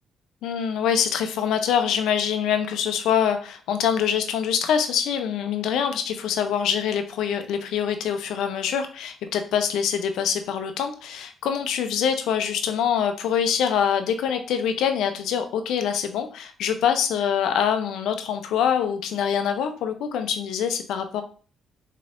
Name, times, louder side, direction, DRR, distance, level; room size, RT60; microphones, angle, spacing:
voice 1, 0.4-21.2, left 8 dB, 85° left, 8 dB, 0.4 m, -24 dB
3.6 x 3.3 x 2.4 m, 0.39 s
cardioid pair, 90°, 0 cm